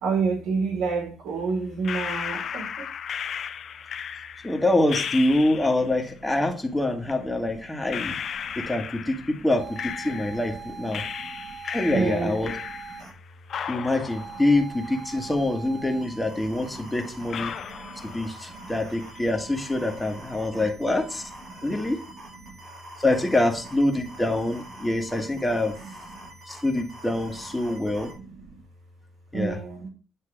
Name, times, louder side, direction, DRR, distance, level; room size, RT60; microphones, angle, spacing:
voice 1, 0.0-2.9 8.4-8.5 10.9-11.6 11.9-12.4 12.9-13.1 16.7-16.9 17.5-18.1 18.5-18.8 20.5-20.9 21.5-21.6 22.4-22.6 24.8-24.9 25.3-25.4 26.2-26.3 28.0-28.6 29.3-29.9, right 4 dB, 85° right, 1 dB, 1.9 m, -30 dB
sound 1, 1.8-6.0 7.1-7.2 7.9-10.6 10.9-13.2 13.5-15.6 15.9-16.0 16.7-16.8 17.3-18.6 18.9-19.5, left 8 dB, 60° left, 0.5 m, -35 dB
voice 2, 4.4-11.0 11.6-12.5 13.7-17.5 18.0-21.2 21.6-22.0 23.0-25.8 26.5-28.1 29.3-29.6, left 1 dB, 10° left, 3 dB, 1.6 m, -25 dB
sound 2, 9.6-13.1 14.1-28.1, right 3 dB, 60° right, 4.1 m, -44 dB
9.0 x 3.3 x 4.9 m, 0.37 s
cardioid pair, 90°, 0 cm